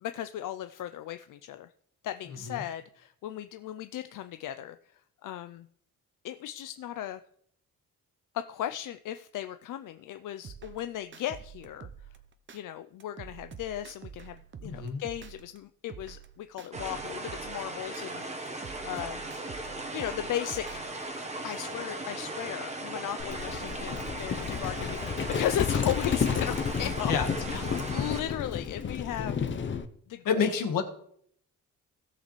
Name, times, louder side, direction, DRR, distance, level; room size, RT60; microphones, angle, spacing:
voice 1, 0.0-1.7 2.0-4.8 5.2-5.7 6.2-7.2 8.3-11.9 12.5-14.4 14.6-19.2 19.7-20.9 21.4-27.1 27.5-29.6 30.1-30.5, left 11 dB, 70° left, 10 dB, 0.5 m, -36 dB
sound 1, 10.4-12.6 13.0-15.6 15.9-18.1 18.5-21.0, right 7 dB, 35° right, 0.7 m, -47 dB
voice 2, 14.6-15.0 27.1-27.3 29.7-29.8 30.2-30.8, left 6 dB, 85° left, 6 dB, 1.5 m, -28 dB
sound 2, 16.7-28.2, right 2 dB, 20° right, 1.1 m, -38 dB
Livestock farm animals working animals, 23.2-29.9, left 6 dB, 35° left, 0.7 m, -31 dB
17.5 x 6.6 x 3.2 m, 0.67 s
cardioid pair, 130°, 32 cm